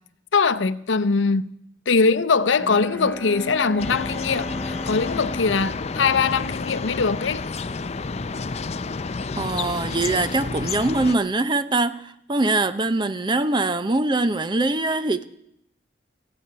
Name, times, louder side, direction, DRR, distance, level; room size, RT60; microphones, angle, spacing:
voice 1, 0.3-1.5 1.9-7.4, left 4 dB, 80° left, 0.7 m, -22 dB
Bowed string instrument, 2.5-6.8, left 1 dB, 10° left, 1.3 m, -35 dB
sound 1, 3.8-11.2, left 4 dB, 35° left, 0.5 m, -30 dB
voice 2, 9.3-15.2, right 2 dB, 25° right, 0.6 m, -23 dB
15.5 x 8.5 x 9.7 m
head